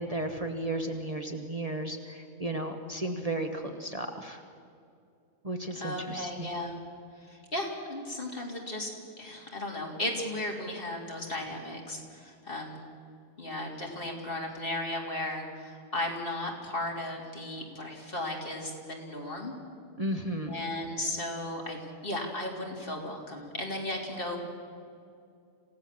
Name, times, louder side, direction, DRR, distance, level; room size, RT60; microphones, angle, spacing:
voice 1, 0.0-4.4 5.4-6.5 20.0-20.6, right 1 dB, 30° right, 4 dB, 1.2 m, -34 dB
voice 2, 5.8-6.8 7.3-8.9 9.2-12.8 13.4-19.5 20.5-24.4, left 1 dB, 45° left, -1 dB, 3.6 m, -35 dB
27.0 x 16.5 x 7.5 m, 2.4 s
omnidirectional pair, 1.3 m